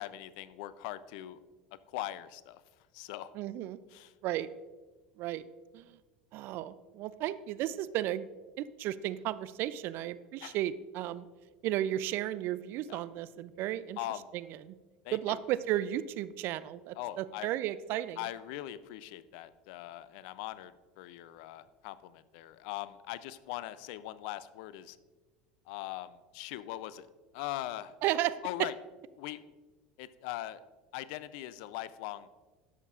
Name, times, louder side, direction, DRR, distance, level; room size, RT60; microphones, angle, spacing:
voice 1, 0.0-1.4 1.9-2.6 2.9-3.3 3.9-4.1 10.4-10.6 12.9-13.0 14.0-14.3 15.0-15.4 17.0-17.5 18.2-25.0 25.7-27.1 27.3-28.0 28.4-28.7 29.2-29.4 30.0-30.6 30.9-32.3, left 14 dB, 65° left, 16 dB, 0.4 m, -41 dB
voice 2, 3.3-3.8 4.2-4.5 5.2-5.4 5.7-6.0 6.3-8.3 8.6-11.3 11.6-14.0 14.3-14.7 15.1-18.3 28.0-28.7, right 13 dB, 55° right, 17 dB, 0.3 m, -34 dB
11.0 x 7.3 x 2.4 m, 1.3 s
hypercardioid pair, 80°, 4 cm